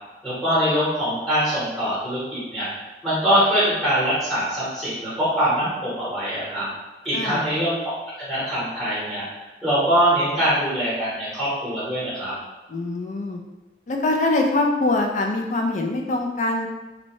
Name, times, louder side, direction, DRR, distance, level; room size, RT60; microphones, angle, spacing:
voice 1, 0.2-2.7 3.0-6.6 7.0-7.9 8.2-9.2 9.6-12.3, equal, ahead, -9 dB, 0.9 m, -23 dB
voice 2, 12.7-13.4 13.9-16.7, left 2 dB, 45° left, 2 dB, 0.3 m, -23 dB
2.6 x 2.1 x 2.9 m, 1.1 s
head